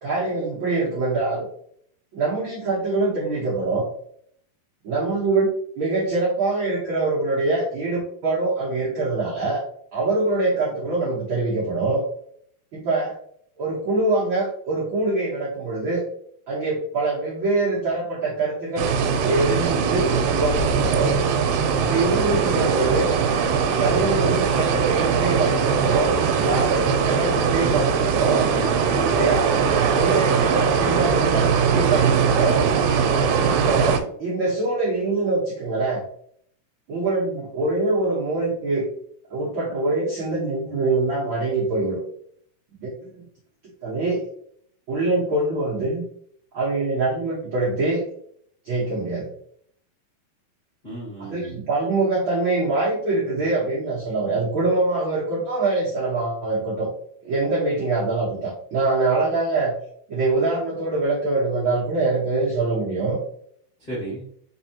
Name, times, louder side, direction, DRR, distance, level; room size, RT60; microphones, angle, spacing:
voice 1, 0.0-1.5 2.1-3.8 4.8-5.5 5.8-9.6 9.9-12.0 12.7-13.1 13.6-16.0 16.5-18.9 19.2-21.1 21.8-23.1 23.7-28.5 29.1-29.5 29.9-32.6 33.4-36.0 36.9-38.9 39.3-42.0 42.8-43.2 43.8-44.2 44.9-46.0 46.5-48.0 48.6-49.3 51.3-56.9 57.2-59.7 60.1-63.2, right 3 dB, 70° right, -6 dB, 1.2 m, -24 dB
sound 1, 18.8-34.0, right 6 dB, 90° right, 2.3 m, -21 dB
voice 2, 28.5-29.5 50.8-51.6 63.8-64.3, right 1 dB, 25° left, -8 dB, 0.9 m, -34 dB
4.5 x 4.0 x 2.8 m, 0.64 s
omnidirectional pair, 4.0 m